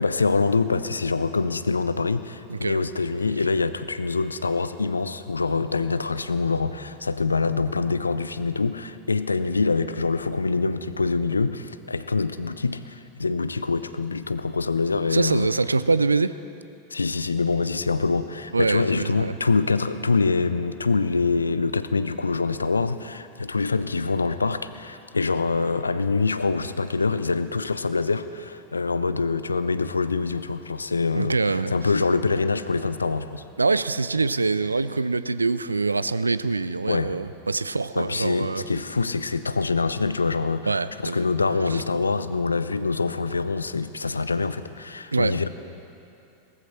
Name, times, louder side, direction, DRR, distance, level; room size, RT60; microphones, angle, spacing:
voice 1, 0.0-15.5 16.9-33.4 36.9-37.2 38.0-45.5, left 4 dB, 75° left, 13 dB, 0.5 m, -25 dB
voice 2, 2.5-2.8 15.1-16.4 18.5-19.3 31.1-31.7 33.6-38.6 40.7-41.2 45.1-45.4, right 3 dB, 80° right, 15 dB, 0.4 m, -24 dB
18.5 x 14.0 x 4.4 m, 2.7 s
figure-of-eight pair, 90°, 0 cm